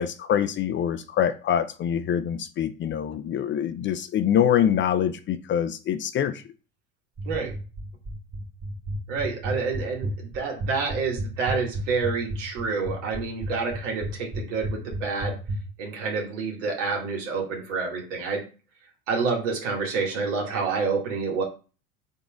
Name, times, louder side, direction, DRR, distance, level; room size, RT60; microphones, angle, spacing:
voice 1, 0.0-6.4, left 9 dB, 30° left, 0.4 m, -25 dB
sound 1, 7.2-15.6, right 1 dB, 25° right, 1.2 m, -31 dB
voice 2, 9.1-15.4 15.8-18.4 19.1-21.4, right 4 dB, 65° right, 2.0 m, -28 dB
3.9 x 3.7 x 3.6 m
hypercardioid pair, 75°, 39 cm